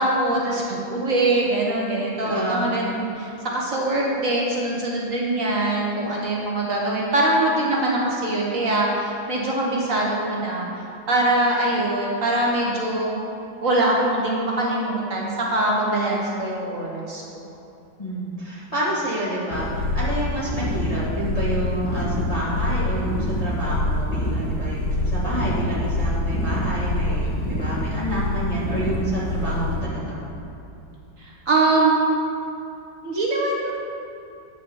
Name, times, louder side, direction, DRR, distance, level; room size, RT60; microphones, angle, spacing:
voice 1, 0.0-10.7 11.1-13.1 13.6-17.5 27.3-27.5 31.2-32.0 33.0-33.7, right 2 dB, 45° right, -3 dB, 1.5 m, -23 dB
voice 2, 2.3-2.7 18.0-30.2, right 1 dB, 20° left, -9 dB, 1.9 m, -28 dB
sound 1, 19.5-29.8, left 1 dB, 65° left, 1.5 m, -25 dB
9.6 x 5.2 x 7.0 m, 2.7 s
omnidirectional pair, 2.1 m